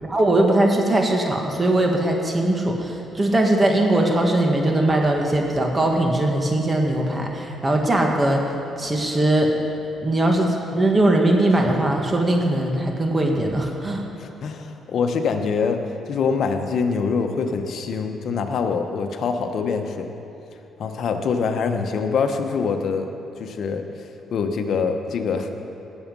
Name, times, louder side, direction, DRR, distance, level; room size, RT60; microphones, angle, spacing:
voice 1, 0.0-8.5 8.8-9.5 10.0-14.0, right 1 dB, 25° right, 1 dB, 1.8 m, -20 dB
voice 2, 14.2-20.1 20.8-23.1 23.4-25.5, left 5 dB, 65° left, 5 dB, 1.1 m, -24 dB
18.5 x 7.3 x 5.4 m, 2.8 s
cardioid pair, 90°, 0 cm